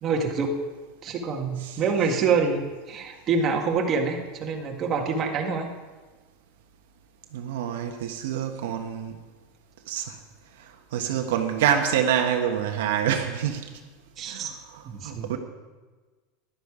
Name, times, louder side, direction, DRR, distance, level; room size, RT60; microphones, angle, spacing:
voice 1, 0.0-0.6 1.0-5.7 14.2-14.5 14.8-15.4, right 5 dB, 35° right, 1 dB, 1.9 m, -26 dB
voice 2, 7.3-9.2 9.9-10.2 10.6-13.7 14.2-15.4, right 9 dB, 80° right, 3 dB, 1.3 m, -27 dB
12.0 x 11.5 x 5.0 m, 1.3 s
supercardioid pair, 135°, 0 cm